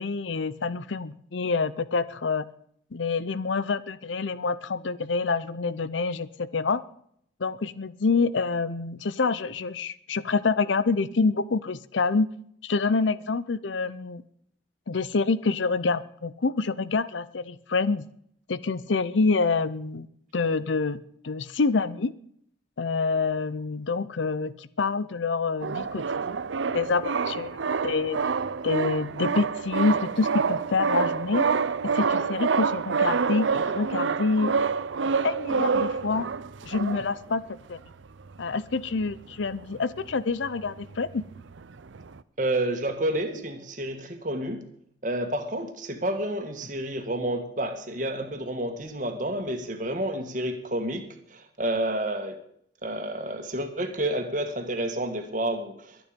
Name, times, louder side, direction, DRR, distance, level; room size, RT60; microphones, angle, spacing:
voice 1, 0.0-2.4 2.9-6.8 7.4-12.3 12.6-14.2 14.9-18.0 18.5-20.1 20.3-22.1 22.8-26.0 26.7-27.5 27.8-28.2 28.6-31.5 31.9-34.6 35.2-36.3 36.6-37.4 37.7-37.8 38.4-41.2, left 4 dB, 80° left, 17 dB, 0.6 m, -27 dB
sound 1, 25.6-37.3 37.9-38.0 38.2-38.4 38.8-40.2 40.4-42.2, right 5 dB, 85° right, 0.6 m, -27 dB
voice 2, 42.4-44.6 45.0-51.0 51.3-52.3 52.8-56.0, right 1 dB, 45° right, 5 dB, 2.1 m, -29 dB
22.5 x 9.3 x 5.2 m, 0.68 s
head